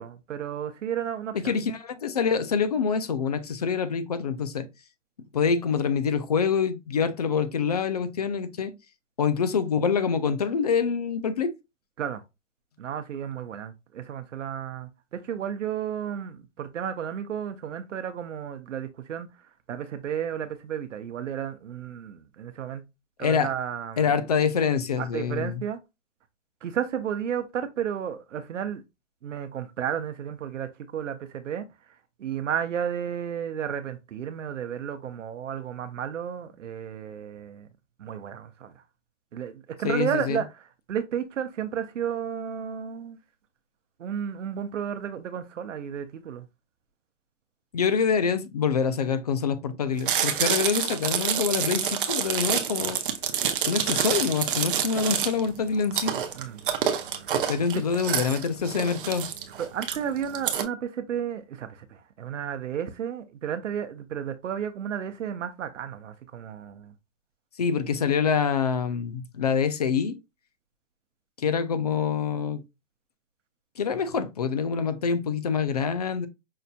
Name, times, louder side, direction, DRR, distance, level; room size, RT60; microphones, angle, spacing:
voice 1, 0.0-1.5 12.0-12.2 12.8-19.3 19.7-22.8 23.2-24.2 25.0-25.8 26.6-28.8 29.2-31.7 32.2-37.7 38.0-38.8 39.3-43.2 44.0-46.5 56.3-56.7 57.5-57.6 59.6-66.9, right 8 dB, 85° right, 0.7 m, -32 dB
voice 2, 1.3-4.6 5.3-8.7 9.2-11.5 23.2-23.5 24.0-25.6 39.8-40.4 47.7-53.0 53.7-56.1 57.5-59.3 67.6-70.1 71.4-72.6 73.8-76.3, left 6 dB, 35° left, 0.4 m, -26 dB
Chewing mastication, 50.0-60.6, right 8 dB, 45° right, 0.7 m, -27 dB
5.5 x 2.6 x 2.2 m
hypercardioid pair, 155°, 36 cm